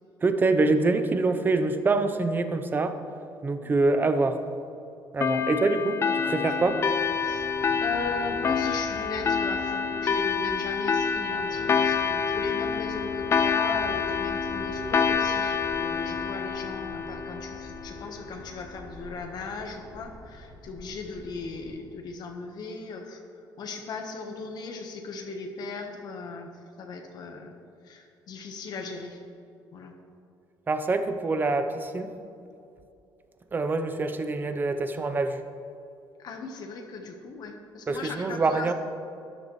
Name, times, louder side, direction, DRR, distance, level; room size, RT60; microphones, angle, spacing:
voice 1, 0.2-3.0 3.4-4.4 5.1-6.8 30.7-32.1 33.5-35.4 37.9-38.7, right 3 dB, 25° right, 9 dB, 0.7 m, -25 dB
sound 1, 5.2-18.3, left 6 dB, 30° left, 0.4 m, -27 dB
Fixed-wing aircraft airplane, 6.6-21.7, right 1 dB, 55° right, 2.9 m, -46 dB
voice 2, 7.8-23.2 23.6-26.5 26.8-27.6 27.8-29.2 29.7-29.9 36.2-38.7, left 4 dB, 55° left, 3 dB, 1.2 m, -37 dB
12.5 x 11.0 x 3.2 m, 2.6 s
cardioid pair, 125°, 8 cm